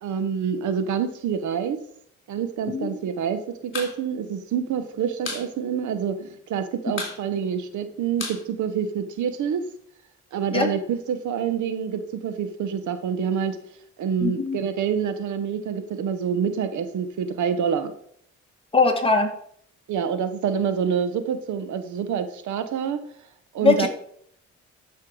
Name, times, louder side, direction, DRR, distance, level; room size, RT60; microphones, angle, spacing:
voice 1, 0.0-1.8 2.3-9.6 10.3-13.6 14.0-17.9 19.9-23.0 23.5-23.9, right 7 dB, 75° right, 10 dB, 1.1 m, -27 dB
sound 1, 3.6-4.0 4.2-4.3 4.6-5.5 5.8-5.9 6.2-6.6 6.9-9.3, left 4 dB, 40° left, 3.7 m, -34 dB
voice 2, 14.2-14.6 18.7-19.3 23.6-23.9, left 4 dB, 20° left, 3 dB, 2.1 m, -20 dB
12.5 x 5.8 x 4.9 m, 0.65 s
cardioid pair, 90°, 30 cm